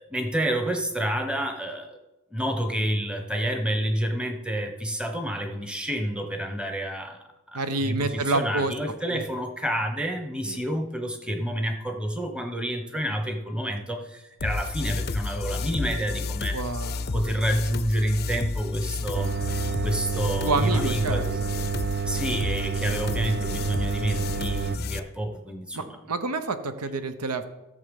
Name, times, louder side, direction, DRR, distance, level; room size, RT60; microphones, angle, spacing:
voice 1, 0.0-2.0 2.3-7.2 7.5-16.6 17.1-19.3 19.8-21.4 22.0-26.0, equal, 5° right, 5 dB, 1.0 m, -29 dB
voice 2, 7.5-8.7 9.1-9.2 10.5-10.6 16.5-17.1 20.4-21.2 25.7-27.4, right 3 dB, 85° right, 10 dB, 0.9 m, -28 dB
sound 1, 14.4-25.0, left 4 dB, 45° left, 0.5 m, -32 dB
sound 2, 19.1-24.8, right 6 dB, 45° right, 0.3 m, -29 dB
13.5 x 6.8 x 5.3 m, 1.0 s
head